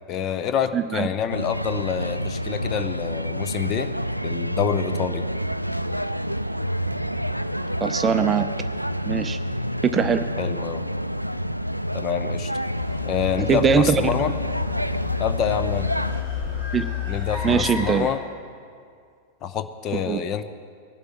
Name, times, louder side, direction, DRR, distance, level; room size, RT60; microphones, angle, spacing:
voice 1, 0.1-3.9 4.2-5.3 10.4-10.8 11.9-12.5 13.0-14.3 15.2-15.9 17.1-18.2 19.4-20.4, left 8 dB, 35° left, 10 dB, 0.7 m, -27 dB
voice 2, 0.7-1.1 7.8-8.5 9.1-9.4 9.8-10.3 13.5-14.0 14.3-14.4 16.7-16.8 17.4-18.1 19.9-20.2, right 6 dB, 20° right, 10 dB, 0.5 m, -21 dB
sound 1, 1.3-16.2, equal, 90° right, 0.3 m, -28 dB
sound 2, 12.7-18.1, left 9 dB, 75° left, 3.8 m, -30 dB
20.5 x 11.5 x 4.4 m, 2.2 s
figure-of-eight pair, 90°, 0 cm